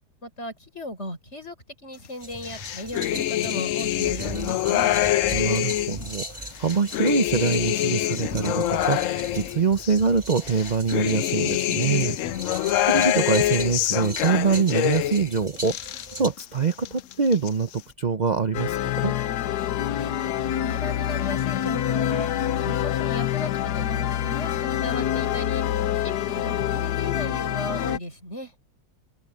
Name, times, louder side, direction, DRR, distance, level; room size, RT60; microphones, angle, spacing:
voice 1, 0.2-1.6 1.8-4.9 19.9-23.5 23.8-28.5, left 1 dB, 35° left, 6.3 m, -36 dB
sound 1, 2.2-16.3, equal, 15° right, 6.9 m, -39 dB
sound 2, 2.4-6.1 6.5-10.0 10.4-15.3 15.6-16.4 16.7-17.5, left 13 dB, 85° left, 0.7 m, -25 dB
voice 2, 5.3-12.2 12.4-19.1, right 5 dB, 65° right, 0.4 m, -25 dB
sound 3, 18.5-28.0, left 11 dB, 70° left, 1.3 m, -26 dB
omnidirectional pair, 1.9 m